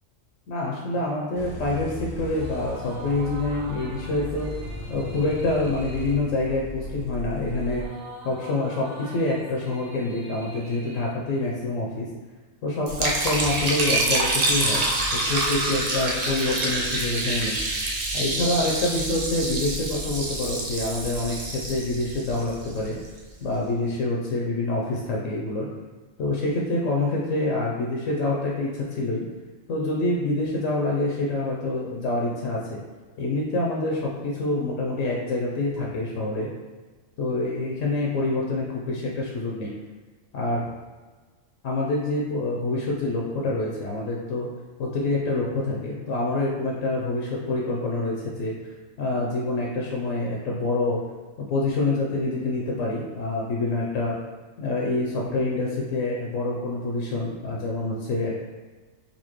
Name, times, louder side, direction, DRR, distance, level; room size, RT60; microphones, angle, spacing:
voice 1, 0.5-4.5 4.9-7.9 8.2-12.1 12.6-14.9 15.1-17.6 18.1-23.0 23.4-25.7 26.2-29.2 29.7-32.8 33.2-36.5 37.2-39.7 40.3-40.7 41.6-44.5 44.8-48.5 49.0-51.0 51.4-54.1 54.6-58.4, left 2 dB, 75° left, -3 dB, 1.0 m, -26 dB
sound 1, 1.3-7.8, left 1 dB, 50° left, 0.7 m, -36 dB
sound 2, 2.1-11.9, right 2 dB, 55° right, 0.7 m, -45 dB
Liquid, 12.9-23.1, right 2 dB, 80° right, 0.3 m, -27 dB
4.2 x 2.5 x 2.9 m, 1.3 s
omnidirectional pair, 1.4 m